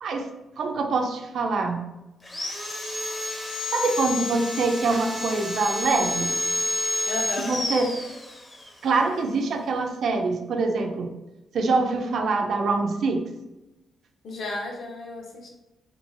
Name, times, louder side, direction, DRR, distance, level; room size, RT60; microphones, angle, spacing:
voice 1, 0.6-1.8 3.7-6.4 7.5-8.0 8.8-11.1 11.5-13.3, right 3 dB, 60° right, 5 dB, 0.3 m, -24 dB
Sawing, 2.2-8.7, left 1 dB, 15° left, 0.5 m, -30 dB
voice 2, 7.1-7.6 14.2-15.5, left 2 dB, 60° left, 0 dB, 0.6 m, -33 dB
3.0 x 2.2 x 2.4 m, 1.0 s
wide cardioid pair, 160°, 0 cm